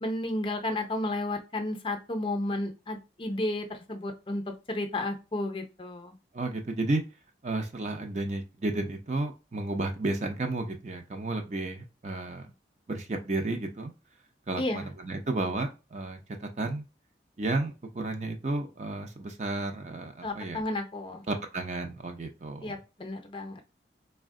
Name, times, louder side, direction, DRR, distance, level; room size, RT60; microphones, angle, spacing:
voice 1, 0.0-4.4 4.7-6.1 14.6-14.9 20.2-21.2 22.6-23.6, left 1 dB, 30° left, 5 dB, 0.5 m, -32 dB
voice 2, 6.3-7.0 7.4-12.5 12.9-13.9 14.5-16.8 17.4-20.6 21.3-22.8, right 2 dB, 40° right, 5 dB, 0.5 m, -32 dB
4.2 x 2.1 x 3.6 m, 0.30 s
head